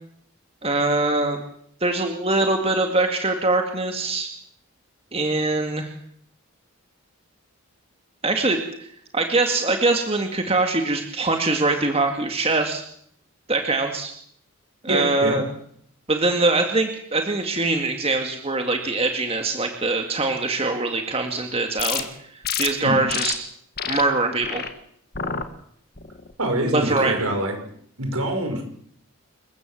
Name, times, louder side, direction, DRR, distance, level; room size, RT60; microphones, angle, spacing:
voice 1, 0.6-1.4 1.8-4.3 5.1-5.9 8.2-8.9 9.1-12.8 13.5-14.1 14.8-15.4 16.1-22.1 22.3-23.3 23.9-24.6 26.7-27.1, right 2 dB, 25° right, 4 dB, 2.1 m, -23 dB
voice 2, 14.9-15.4 22.8-23.0 26.4-27.5 28.0-28.6, right 1 dB, 75° right, 5 dB, 5.6 m, -24 dB
sound 1, 21.8-22.0 22.4-22.7 23.1-23.3 23.8-24.0 24.4-24.7 25.1-25.5 26.0-26.3, left 8 dB, 45° left, 1.9 m, -27 dB
28.0 x 15.0 x 7.7 m, 0.66 s
head